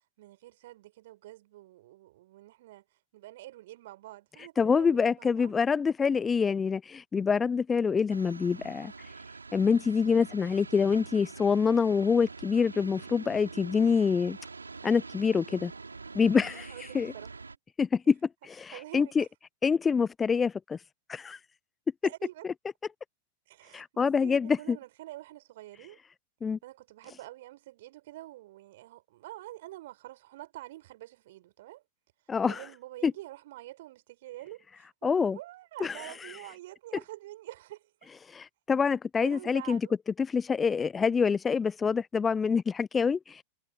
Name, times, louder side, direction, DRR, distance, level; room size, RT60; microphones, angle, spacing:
voice 1, 0.2-2.8 3.1-5.5 16.7-17.4 18.7-19.1 22.0-22.4 23.5-26.0 26.6-31.8 32.5-38.1 39.2-39.9, right 16 dB, 55° right, 4.9 m, -47 dB
voice 2, 4.6-8.9 9.5-14.4 14.8-15.7 16.1-17.1 17.8-18.2 18.4-19.2 19.6-20.8 21.1-21.4 23.7-24.8 26.4-26.6 32.3-32.6 33.0-33.1 35.0-35.4 35.8-36.3 38.3-39.8 40.2-43.4, left 5 dB, 15° left, 0.5 m, -26 dB
sound 1, 8.1-17.6, right 4 dB, 80° right, 6.5 m, -45 dB
figure-of-eight pair, 90°, 0 cm